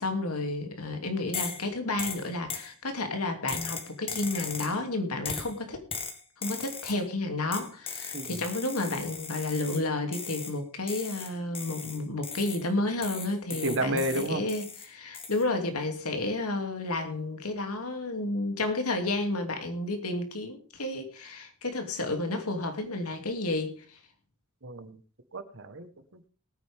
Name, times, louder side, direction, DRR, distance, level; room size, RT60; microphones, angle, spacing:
voice 1, 0.0-5.8 6.4-24.0, left 2 dB, 90° left, 5 dB, 2.7 m, -31 dB
sound 1, 1.3-1.7 2.0-2.7 3.5-4.8 5.3-5.5 5.9-7.0 7.5-9.9 10.1-10.6 10.9-12.7 13.0-14.9 15.1-15.4, left 5 dB, 25° left, 2.1 m, -38 dB
voice 2, 13.6-14.4 24.6-25.0 25.3-26.3, right 1 dB, 60° right, 11 dB, 1.3 m, -32 dB
20.0 x 9.2 x 3.6 m, 0.39 s
head